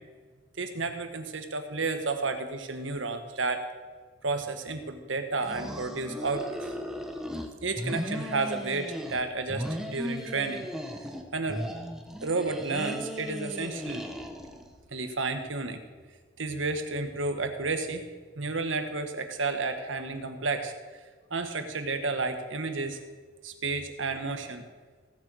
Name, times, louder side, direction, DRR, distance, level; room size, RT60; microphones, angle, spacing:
voice 1, 0.6-3.7 4.2-6.6 7.6-10.7 11.3-11.6 12.2-14.0 14.9-15.8 16.4-18.0 18.4-20.7 21.3-23.0 23.4-24.6, right 3 dB, 80° right, 7 dB, 1.5 m, -31 dB
sound 1, 5.4-7.5 7.8-9.2 9.5-11.2 11.5-14.7, equal, 5° right, 1.2 m, -37 dB
17.0 x 8.2 x 6.3 m, 1.5 s
head